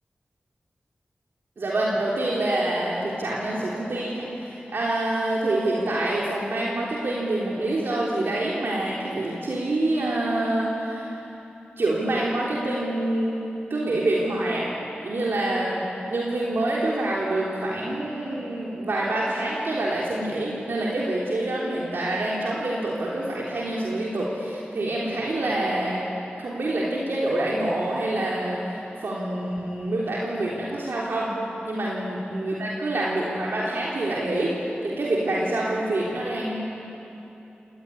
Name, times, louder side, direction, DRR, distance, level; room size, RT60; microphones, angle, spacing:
voice 1, 1.6-11.2 11.8-13.4 13.7-14.7 15.0-26.0 26.4-31.3 31.7-36.6, right 1 dB, 80° right, -5 dB, 3.8 m, -26 dB
27.0 x 18.5 x 9.9 m, 3.0 s
wide cardioid pair, 60°, 4 cm